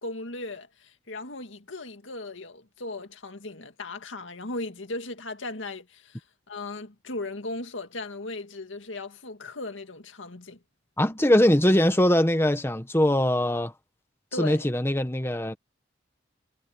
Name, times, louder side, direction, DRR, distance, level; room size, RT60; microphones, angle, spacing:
voice 1, 0.0-10.6 14.3-14.7, left 2 dB, 85° left, 2.1 m, -37 dB
voice 2, 11.0-13.7 14.4-15.5, left 1 dB, 15° left, 1.3 m, -22 dB
head